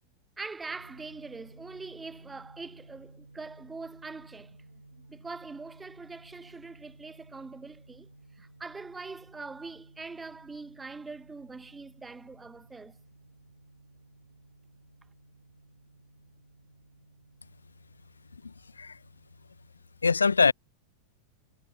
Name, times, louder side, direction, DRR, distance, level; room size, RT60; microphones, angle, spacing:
voice 1, 0.4-4.6 5.0-8.1 8.4-13.0, right 4 dB, 10° right, 0.9 m, -43 dB
sound 1, 0.7-19.7, right 2 dB, 85° right, 1.4 m, -56 dB
voice 2, 18.4-19.0 20.0-20.5, left 4 dB, 75° left, 0.5 m, -24 dB
figure-of-eight pair, 90°, 0 cm